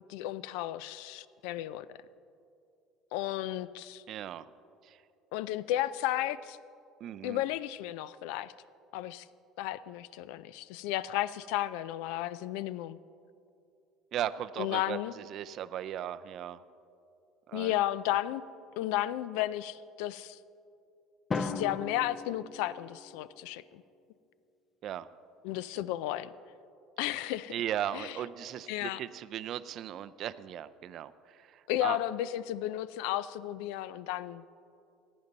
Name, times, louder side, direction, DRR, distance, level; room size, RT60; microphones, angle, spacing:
voice 1, 0.1-1.9 3.1-4.0 5.3-6.6 7.2-8.5 8.9-9.3 9.6-13.0 14.6-15.1 17.5-18.4 18.8-20.4 21.3-23.8 25.4-26.3 27.0-27.5 27.9-28.1 28.7-29.0 31.7-34.6, left 14 dB, 85° left, 17 dB, 0.3 m, -33 dB
voice 2, 4.1-4.5 4.8-5.0 7.0-7.4 14.1-16.6 17.5-17.7 24.8-25.1 25.8-25.9 27.5-32.0, right 11 dB, 50° right, 14 dB, 0.4 m, -37 dB
Drum, 21.3-23.3, left 4 dB, 25° left, 0.5 m, -37 dB
15.5 x 9.5 x 4.0 m, 2.5 s
cardioid pair, 130°, 0 cm